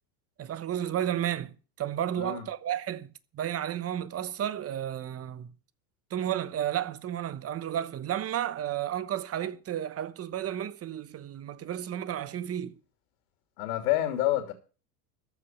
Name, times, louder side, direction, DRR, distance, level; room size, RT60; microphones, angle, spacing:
voice 1, 0.4-5.5 6.1-12.7, right 10 dB, 30° right, 1.0 m, -32 dB
voice 2, 13.6-14.5, left 14 dB, 70° left, 3.1 m, -28 dB
14.0 x 5.7 x 9.1 m
hypercardioid pair, 105°, 48 cm